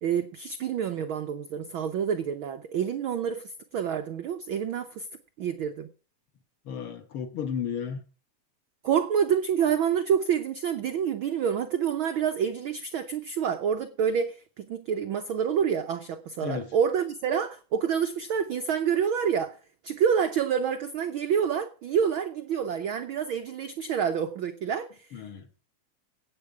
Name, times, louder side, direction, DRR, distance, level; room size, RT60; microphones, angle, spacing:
voice 1, 0.0-5.1 5.4-5.9 8.8-19.6 19.8-25.2, right 7 dB, 80° right, 1.1 m, -28 dB
voice 2, 6.7-8.0 16.4-16.7 25.1-25.5, left 7 dB, 55° left, 1.8 m, -33 dB
15.5 x 8.9 x 4.9 m
omnidirectional pair, 3.3 m